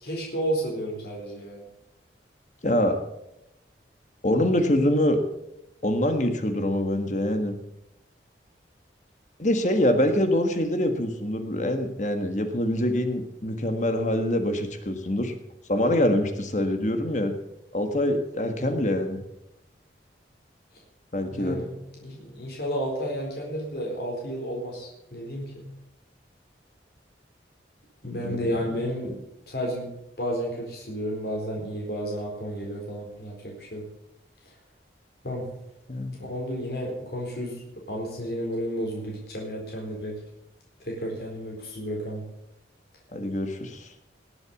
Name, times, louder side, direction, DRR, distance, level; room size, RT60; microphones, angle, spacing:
voice 1, 0.0-1.7 21.3-21.7 22.0-25.5 28.0-29.2 29.5-29.9 30.2-33.8 34.5-34.6 35.2-35.5 36.2-37.6 37.9-40.2 40.8-42.2, equal, 60° left, -2 dB, 4.1 m, -32 dB
voice 2, 2.6-3.0 4.2-5.2 5.8-7.5 9.4-15.3 15.7-17.3 17.7-19.2 21.1-21.6 28.1-28.5 35.9-36.1 43.1-43.9, left 1 dB, 40° left, 7 dB, 1.5 m, -25 dB
19.0 x 8.0 x 7.1 m, 0.85 s
head